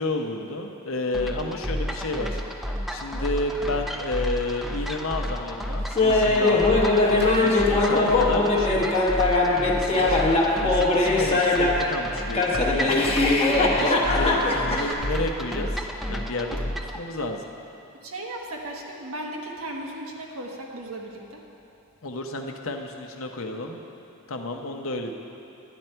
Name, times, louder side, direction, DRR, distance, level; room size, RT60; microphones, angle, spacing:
voice 1, 0.0-2.4 2.9-6.9 7.4-9.1 9.7-10.2 10.6-13.1 13.8-17.4 22.0-23.8 24.3-25.1, left 2 dB, 65° left, 3 dB, 0.8 m, -31 dB
sound 1, 1.1-17.0, equal, ahead, 0.5 m, -31 dB
Laughter, 6.0-11.9 12.3-14.9, left 2 dB, 30° left, 1.0 m, -21 dB
voice 2, 18.0-21.4 25.1-25.2, right 1 dB, 80° right, 0 dB, 1.3 m, -36 dB
11.0 x 10.0 x 4.5 m, 2.8 s
head